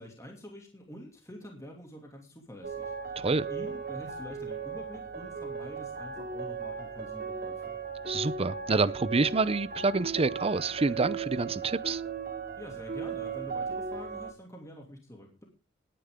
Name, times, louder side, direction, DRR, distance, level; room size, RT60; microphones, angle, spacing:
voice 1, 0.0-7.8 12.6-15.4, equal, 15° left, 2.6 m, -46 dB
sound 1, 2.6-14.3, right 5 dB, 50° right, 3.1 m, -37 dB
voice 2, 8.1-12.0, right 3 dB, 30° right, 0.6 m, -27 dB
19.5 x 10.0 x 3.7 m
head